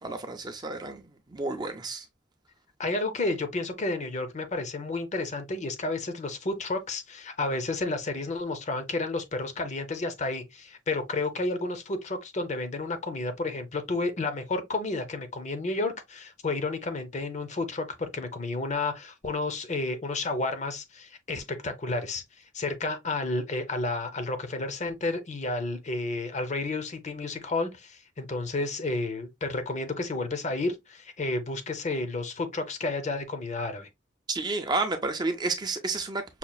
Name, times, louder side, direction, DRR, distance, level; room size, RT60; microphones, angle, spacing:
voice 1, 0.0-1.0 1.3-2.1 34.3-36.4, right 3 dB, 20° right, 0.5 m, -31 dB
voice 2, 2.8-22.2 22.5-33.9, left 2 dB, 35° left, 0.7 m, -31 dB
5.7 x 2.3 x 2.3 m
head